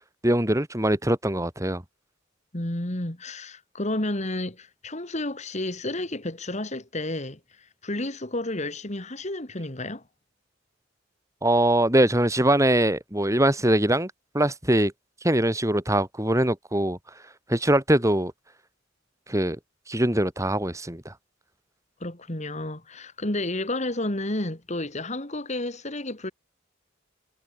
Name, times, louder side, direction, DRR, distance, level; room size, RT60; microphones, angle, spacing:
voice 1, 0.2-1.8 11.4-14.9 15.2-17.0 17.5-18.3 19.3-19.6 19.9-21.1, right 1 dB, 15° right, 4.5 m, -22 dB
voice 2, 2.5-10.0 22.0-26.3, left 1 dB, 35° left, 2.6 m, -31 dB
head